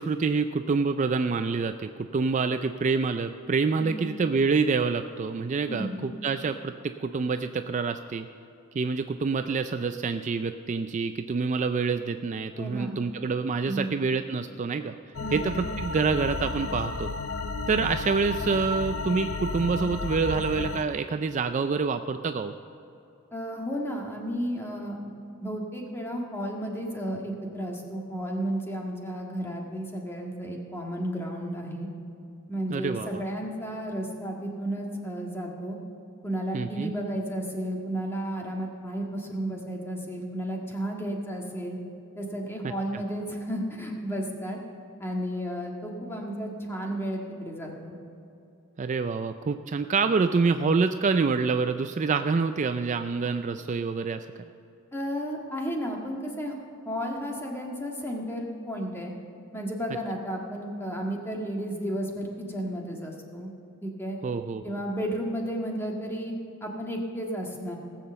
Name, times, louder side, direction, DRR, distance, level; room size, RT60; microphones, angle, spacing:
voice 1, 0.0-8.3 8.7-14.9 15.3-17.1 17.7-22.5 32.7-33.2 36.5-36.9 42.6-42.7 48.8-54.3 64.2-64.8, right 4 dB, 35° right, 9 dB, 0.3 m, -27 dB
voice 2, 3.8-4.1 5.7-6.0 12.6-13.0 13.7-14.0 15.2-15.5 23.3-25.0 25.4-31.9 32.5-35.8 36.2-41.8 42.2-44.6 45.0-48.0 54.9-56.5 56.8-59.1 59.5-63.5 63.8-64.2 64.6-66.3 66.6-67.8, equal, 10° left, 0 dB, 1.7 m, -33 dB
sound 1, 15.1-20.8, left 3 dB, 65° left, 0.6 m, -32 dB
18.5 x 7.5 x 6.8 m, 2.7 s
head